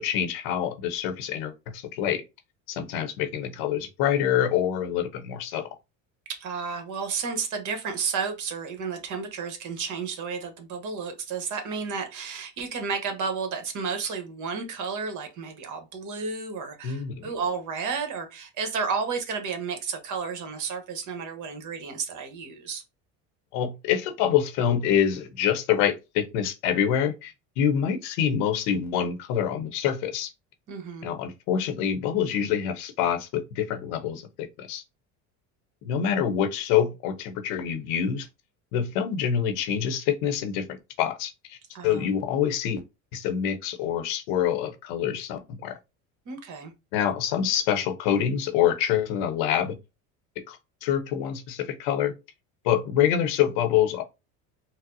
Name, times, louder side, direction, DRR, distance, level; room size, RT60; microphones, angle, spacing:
voice 1, 0.0-2.2 2.7-5.7 16.8-17.1 23.5-30.3 31.0-34.8 35.8-38.3 38.7-41.6 41.8-42.8 43.1-45.8 46.9-49.8 50.5-52.1 52.6-54.0, left 9 dB, 75° left, 0.7 m, -26 dB
voice 2, 6.3-22.8 30.7-31.1 41.7-42.1 46.3-46.7, right 5 dB, 50° right, 1.1 m, -32 dB
4.0 x 2.0 x 2.6 m
supercardioid pair, 90°, 38 cm